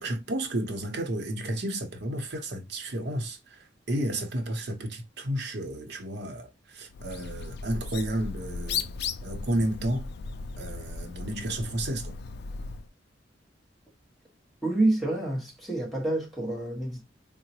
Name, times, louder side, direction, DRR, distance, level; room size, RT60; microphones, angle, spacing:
voice 1, 0.0-3.4 3.9-8.9 9.2-10.1 10.6-12.1, right 1 dB, 65° right, 0.8 m, -32 dB
Bird, 6.9-12.9, left 5 dB, 60° left, 0.3 m, -36 dB
voice 2, 14.6-17.0, right 2 dB, ahead, 1.0 m, -28 dB
3.8 x 2.0 x 2.8 m
head